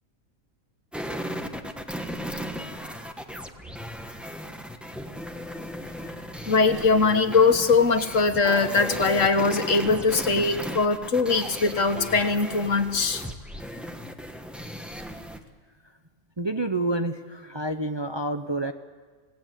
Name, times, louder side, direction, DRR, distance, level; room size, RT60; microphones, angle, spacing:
sound 1, 0.9-15.4, equal, ahead, 1.3 m, -36 dB
voice 1, 6.5-13.3, left 4 dB, 65° left, 7 dB, 1.8 m, -21 dB
voice 2, 16.4-18.7, right 2 dB, 25° right, 6 dB, 0.8 m, -28 dB
28.0 x 18.0 x 8.3 m, 1.5 s
omnidirectional pair, 1.4 m